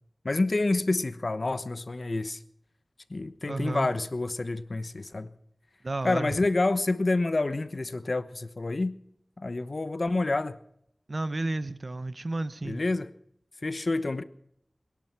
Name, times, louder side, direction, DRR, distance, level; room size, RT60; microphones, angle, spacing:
voice 1, 0.2-2.4 3.1-5.3 6.0-9.0 9.4-10.6 12.6-13.1 13.6-14.2, left 2 dB, 60° left, 1.0 m, -28 dB
voice 2, 3.5-3.9 5.8-6.4 11.1-12.8, right 2 dB, 50° right, 0.8 m, -32 dB
21.0 x 11.5 x 5.9 m
wide cardioid pair, 60°, 0 cm